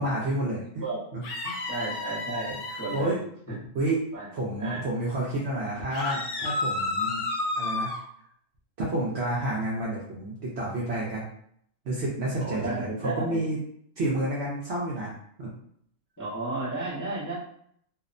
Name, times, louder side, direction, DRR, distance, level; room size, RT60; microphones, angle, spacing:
voice 1, 0.0-0.8 1.1-1.6 2.7-3.2 3.7-4.0 4.3-7.2 7.6-7.9 8.8-11.3 11.8-13.6 14.0-15.5, right 1 dB, 65° right, -4 dB, 0.7 m, -30 dB
sound 1, 1.2-3.0 5.9-8.0, left 2 dB, 85° left, 1.1 m, -31 dB
voice 2, 1.7-3.2 4.1-4.3 4.6-4.8 12.4-13.4 16.2-17.3, right 2 dB, 25° left, -10 dB, 0.4 m, -32 dB
2.7 x 2.0 x 2.4 m, 0.66 s
omnidirectional pair, 1.5 m